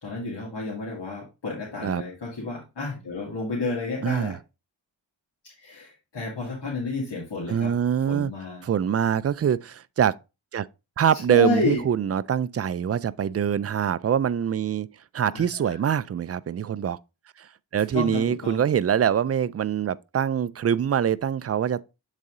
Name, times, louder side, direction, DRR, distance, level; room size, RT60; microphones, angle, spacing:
voice 1, 0.0-4.4 5.4-7.7 8.1-8.6 11.1-11.8 15.3-15.8 17.9-18.6, left 3 dB, 60° left, 2.1 m, -31 dB
voice 2, 4.0-4.4 7.5-8.3 8.6-10.2 10.5-10.7 11.0-14.9 15.1-17.0 17.4-17.5 17.7-21.8, right 8 dB, 35° right, 0.4 m, -24 dB
7.6 x 4.1 x 3.7 m
cardioid pair, 60°, 46 cm